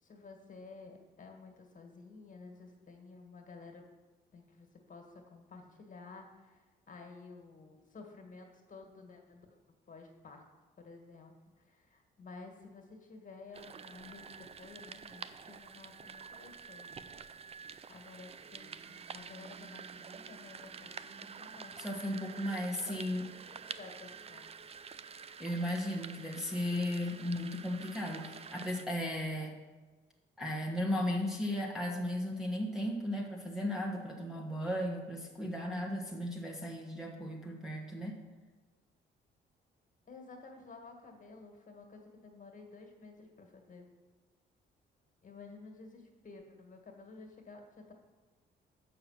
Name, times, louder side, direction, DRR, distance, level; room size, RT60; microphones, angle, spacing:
voice 1, 0.0-3.8 4.3-10.4 10.8-17.1 17.9-24.5 26.0-27.0 40.0-43.9 45.2-47.9, left 4 dB, 40° left, 2 dB, 1.8 m, -53 dB
sound 1, 13.5-28.9, right 6 dB, 30° right, 0.4 m, -48 dB
voice 2, 21.8-23.3 25.4-29.6 30.4-38.2, left 1 dB, ahead, -2 dB, 1.3 m, -35 dB
6.6 x 5.8 x 7.3 m, 1.3 s
cardioid pair, 90°, 20 cm